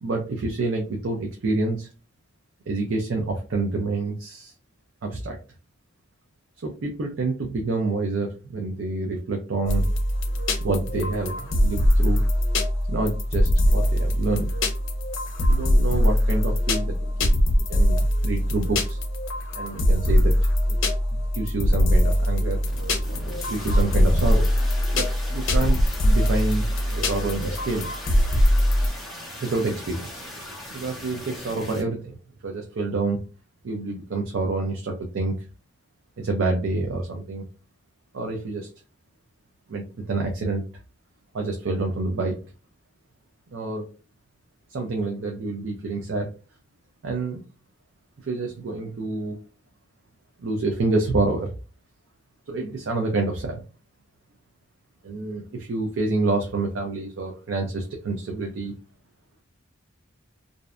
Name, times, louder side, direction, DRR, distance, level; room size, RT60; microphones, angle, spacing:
voice 1, 0.0-1.9 2.7-4.5 5.0-5.4 6.6-9.8 10.6-12.2 12.9-14.6 15.5-17.4 17.7-19.0 19.5-20.3 20.7-20.8 21.1-22.6 23.1-24.5 24.9-25.8 26.0-26.7 26.9-27.9 29.4-30.1 30.7-32.2 32.4-33.2 33.6-35.3 36.2-37.5 38.1-38.7 39.7-40.6 41.3-42.4 43.5-43.9 44.7-46.3 47.0-47.4 48.2-49.4 50.4-51.5 52.5-53.6 55.0-58.7, right 3 dB, 60° right, 2 dB, 0.4 m, -27 dB
sound 1, 9.7-28.9, equal, 65° left, 0.6 m, -22 dB
sound 2, 22.7-31.8, left 1 dB, ahead, 0.5 m, -39 dB
2.6 x 2.1 x 2.4 m, 0.33 s
head